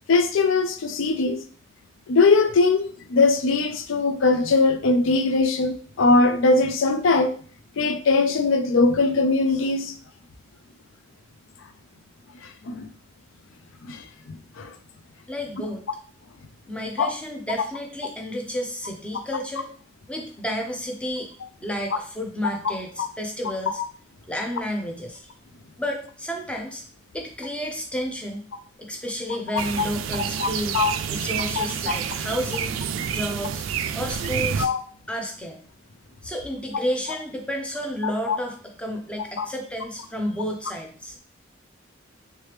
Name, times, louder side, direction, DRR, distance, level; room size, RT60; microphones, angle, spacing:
voice 1, 0.1-1.4 2.1-7.4 7.8-9.9 12.4-12.9 13.9-14.7 17.0-17.1 23.0-23.1 29.5-29.9 30.4-30.5 30.7-30.9 31.6-31.7 34.6-34.8 38.0-38.4 39.4-39.5, left 3 dB, 75° left, 0.4 m, -21 dB
voice 2, 15.3-15.8 16.7-19.7 20.1-21.3 21.6-23.8 24.3-25.3 25.8-26.8 27.1-28.4 28.8-32.8 33.1-33.6 33.9-34.7 35.1-35.6 36.2-41.2, equal, 5° left, 0.5 m, -31 dB
sound 1, 29.6-34.7, right 7 dB, 80° right, 0.3 m, -29 dB
3.3 x 3.2 x 3.2 m
head